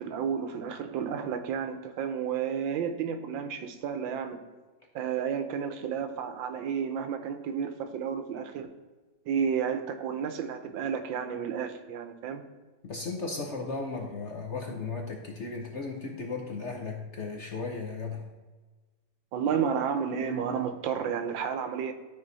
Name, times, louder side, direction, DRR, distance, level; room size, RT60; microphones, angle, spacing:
voice 1, 0.0-4.4 4.9-8.7 9.3-12.4 19.3-21.9, right 7 dB, 85° right, 8 dB, 1.5 m, -31 dB
voice 2, 12.8-18.3, left 4 dB, 50° left, 2 dB, 0.9 m, -35 dB
12.5 x 4.7 x 4.0 m, 1.3 s
omnidirectional pair, 2.0 m